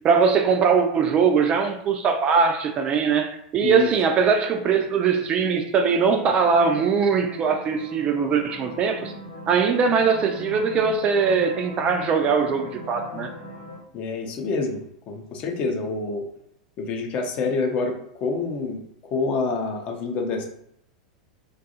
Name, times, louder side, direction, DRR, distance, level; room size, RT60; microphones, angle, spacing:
voice 1, 0.0-9.1 9.5-13.3, right 5 dB, 30° right, 6 dB, 0.3 m, -21 dB
sound 1, 6.0-13.8, left 1 dB, 70° left, 0.9 m, -41 dB
voice 2, 13.9-16.3 16.8-18.8 19.1-20.5, left 4 dB, 40° left, 3 dB, 0.5 m, -27 dB
2.5 x 2.3 x 2.6 m, 0.74 s
figure-of-eight pair, 90°, 4 cm